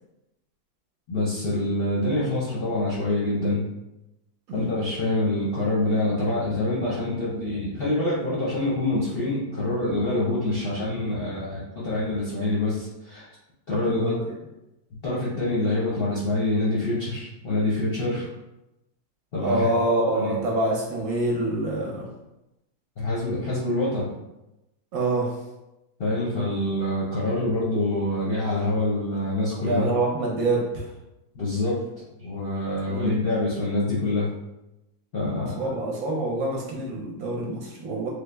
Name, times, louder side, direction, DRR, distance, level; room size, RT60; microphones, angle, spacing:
voice 1, 1.1-3.6 4.5-13.3 13.7-14.2 15.0-18.3 19.3-19.6 20.0-20.3 23.0-24.1 26.0-29.9 31.3-31.8 32.2-34.3 35.1-35.7, left 2 dB, 55° left, -8 dB, 0.6 m, -26 dB
voice 2, 13.9-14.4 19.4-22.1 23.0-23.1 24.9-25.4 29.5-30.9 32.8-33.2 35.4-38.1, right 2 dB, 65° right, -2 dB, 1.0 m, -26 dB
3.3 x 2.0 x 3.2 m, 0.93 s
omnidirectional pair, 1.8 m